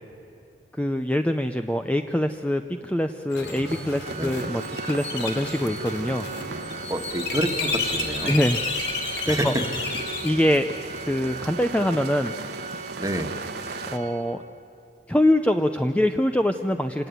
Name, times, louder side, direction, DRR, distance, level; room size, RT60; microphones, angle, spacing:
voice 1, 0.7-6.3 8.2-8.6 9.3-9.5 10.2-10.7 11.0-12.3 12.7-12.9 13.9-14.4 15.1-17.1, left 1 dB, 10° left, 7 dB, 0.6 m, -24 dB
sound 1, 3.3-10.3, left 4 dB, 70° left, 3.3 m, -31 dB
sound 2, 3.6-14.0, right 3 dB, 60° right, 1.2 m, -38 dB
Organ, 4.0-14.7, right 4 dB, 40° right, 0.7 m, -39 dB
voice 2, 6.9-8.3 9.2-9.6 13.0-13.3, right 1 dB, 20° right, 5 dB, 1.6 m, -28 dB
26.0 x 18.0 x 9.4 m, 2.7 s
head